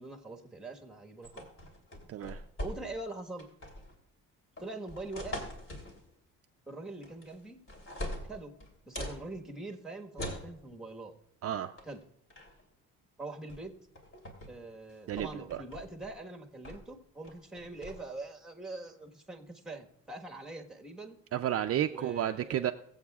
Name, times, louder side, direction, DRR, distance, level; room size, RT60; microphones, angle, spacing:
voice 1, 0.0-1.5 2.6-3.5 4.6-5.4 6.7-7.6 8.3-8.6 8.9-11.1 11.8-12.0 13.2-13.8 14.5-21.2 21.9-22.7, right 2 dB, ahead, 2 dB, 1.4 m, -43 dB
sound 1, 1.2-3.1 3.4-3.9 4.6-6.0 7.0-7.4 7.7-9.2 10.2-10.5 11.8-12.0 12.3-12.6 13.5-13.6 14.0-14.5 14.9-16.1 16.6-16.9 17.2-17.9, left 1 dB, 40° left, 3.2 m, -42 dB
voice 2, 2.1-2.4 11.4-11.8 15.1-15.3 21.3-22.7, right 11 dB, 45° right, 7 dB, 0.5 m, -31 dB
21.5 x 8.0 x 2.4 m, 0.72 s
cardioid pair, 90°, 32 cm